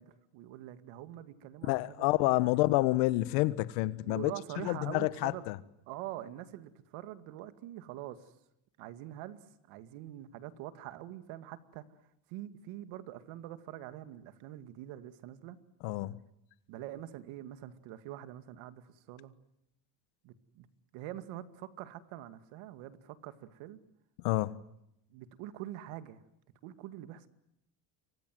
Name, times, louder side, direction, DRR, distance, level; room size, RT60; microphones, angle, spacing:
voice 1, 0.0-2.1 4.0-5.5 5.9-8.3 8.8-11.8 12.3-15.6 16.7-19.3 20.2-20.7 20.9-23.8 25.1-26.2 26.6-27.3, right 13 dB, 75° right, 2.4 m, -45 dB
voice 2, 1.7-4.3 4.6-5.6 15.8-16.2 24.2-24.6, left 19 dB, 85° left, 1.5 m, -28 dB
29.0 x 24.5 x 7.9 m
cardioid pair, 120°, 48 cm